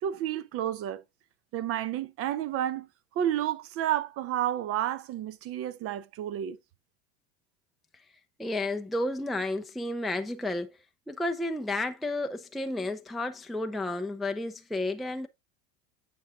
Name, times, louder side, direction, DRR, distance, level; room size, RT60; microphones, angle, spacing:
voice 1, 0.0-1.0 1.5-2.9 3.1-6.6, right 11 dB, 45° right, 0.8 m, -30 dB
voice 2, 8.4-10.8 11.1-15.3, left 2 dB, ahead, 0.5 m, -32 dB
9.4 x 6.2 x 2.4 m
supercardioid pair, 110°, 33 cm